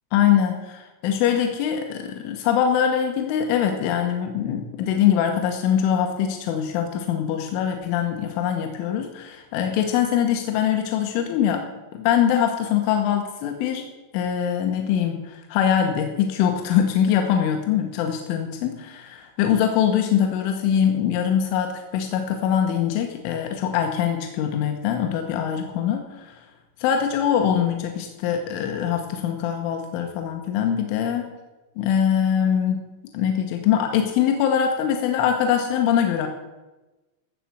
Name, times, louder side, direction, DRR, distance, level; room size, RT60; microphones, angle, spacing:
voice 1, 0.1-11.6 11.9-13.9 14.1-26.4 26.8-31.3 31.8-32.8 33.1-36.3, left 9 dB, 85° left, 4 dB, 3.5 m, -23 dB
14.5 x 7.1 x 7.9 m, 1.1 s
omnidirectional pair, 5.4 m